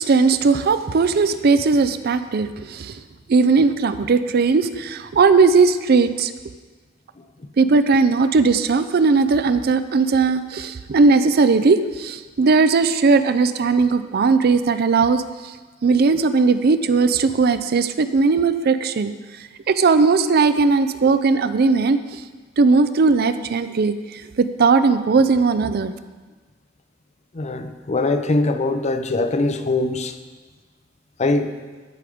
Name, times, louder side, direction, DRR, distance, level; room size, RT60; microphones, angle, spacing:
voice 1, 0.0-3.0 3.3-6.3 7.6-15.5 15.8-19.1 19.7-22.2 22.6-25.9, right 4 dB, 55° right, 11 dB, 0.4 m, -18 dB
voice 2, 27.3-30.2 31.2-31.6, left 2 dB, 35° left, 9 dB, 0.6 m, -22 dB
14.5 x 4.9 x 5.1 m, 1.3 s
head